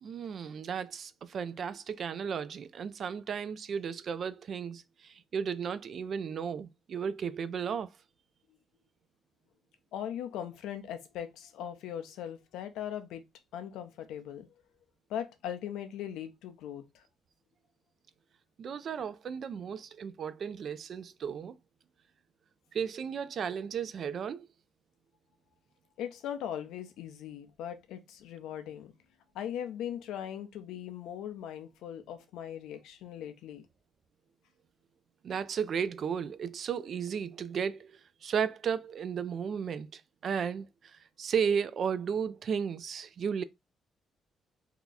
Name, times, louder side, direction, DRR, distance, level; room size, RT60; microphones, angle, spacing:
voice 1, 0.0-7.9 18.6-21.6 22.7-24.5 35.2-43.4, right 7 dB, 55° right, 0.4 m, -34 dB
voice 2, 9.9-13.2 13.5-14.5 15.1-17.0 26.0-28.9 29.3-33.6, left 10 dB, 90° left, 0.6 m, -39 dB
2.8 x 2.4 x 3.8 m
cardioid pair, 90°, 0 cm